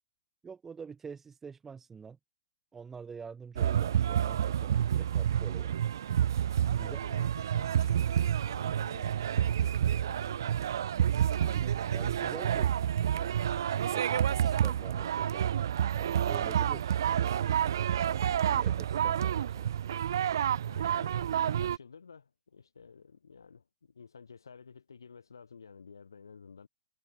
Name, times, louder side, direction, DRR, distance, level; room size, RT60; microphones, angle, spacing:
voice 1, 0.4-2.2 2.7-5.8 6.8-7.0 11.4-12.7 13.1-15.5 15.9-16.9 18.4-19.7, right 5 dB, 15° right, 2.4 m, -47 dB
sound 1, 3.6-21.8, right 9 dB, 70° right, 0.9 m, -29 dB
voice 2, 6.8-10.6 20.6-26.7, left 5 dB, 90° left, 4.9 m, -52 dB
hypercardioid pair, 130°, 2 cm